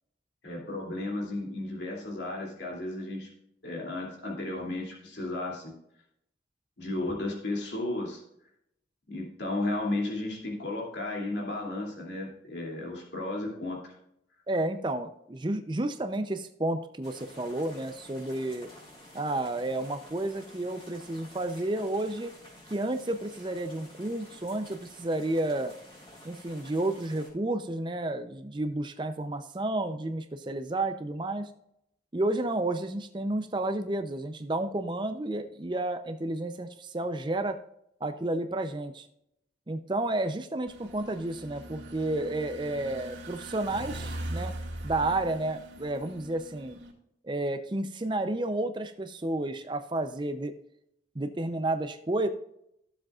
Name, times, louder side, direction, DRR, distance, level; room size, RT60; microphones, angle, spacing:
voice 1, 0.4-3.3 3.6-5.7 6.8-8.2 9.1-13.9, left 2 dB, 70° left, -2 dB, 2.7 m, -34 dB
voice 2, 14.5-18.7 19.1-22.3 22.7-25.7 26.2-31.5 32.1-37.6 38.0-39.1 39.7-44.5 44.8-46.8 47.2-50.5 51.2-52.3, right 2 dB, 25° right, 8 dB, 0.5 m, -31 dB
sound 1, 17.0-27.3, left 1 dB, 25° left, 4.0 m, -51 dB
sound 2, 40.7-46.9, right 1 dB, 85° right, 2.4 m, -41 dB
14.5 x 7.6 x 2.4 m, 0.77 s
head